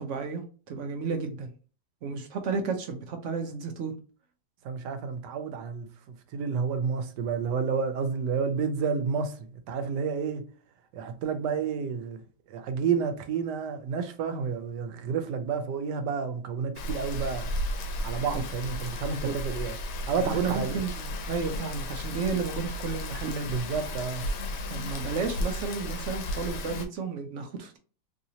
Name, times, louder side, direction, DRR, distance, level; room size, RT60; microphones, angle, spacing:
voice 1, 0.0-1.5 2.0-4.0 18.3-18.4 19.1-19.4 20.2-23.8 24.7-27.8, right 5 dB, 70° right, 0.7 m, -33 dB
voice 2, 4.6-5.9 6.3-10.4 10.9-12.2 12.5-17.5 18.0-19.7 20.1-20.8 23.5-24.3, right 6 dB, 90° right, 1.2 m, -30 dB
Rain, 16.8-26.9, left 1 dB, 85° left, 1.2 m, -34 dB
3.1 x 2.7 x 2.7 m
omnidirectional pair, 1.8 m